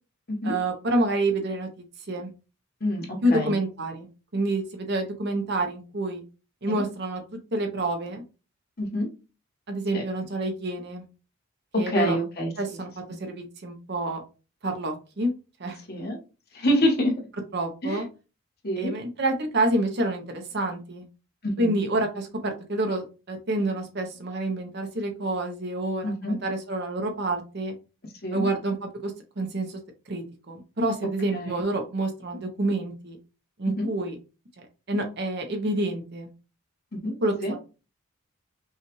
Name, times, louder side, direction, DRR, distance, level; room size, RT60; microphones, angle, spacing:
voice 1, 0.4-1.7 2.1-2.3 3.2-4.1 4.3-6.2 6.6-8.2 9.7-11.0 11.8-12.2 12.6-12.9 13.2-14.2 14.6-15.3 15.6-15.8 17.5-18.0 18.8-21.0 21.6-27.7 28.3-29.8 30.1-33.2 33.6-34.2 34.9-36.3 37.2-37.6, right 2 dB, 50° right, 4 dB, 0.7 m, -28 dB
voice 2, 2.8-3.6 6.7-6.8 8.8-9.1 9.9-10.0 11.9-12.8 15.9-16.2 16.5-17.1 17.8-18.0 18.6-18.9 21.4-21.7 22.4-22.5 26.0-26.4 28.2-28.5 31.3-31.6 33.7-33.9 36.9-37.1 37.4-37.5, equal, 45° left, 0 dB, 1.2 m, -27 dB
5.5 x 2.4 x 3.0 m, 0.32 s
head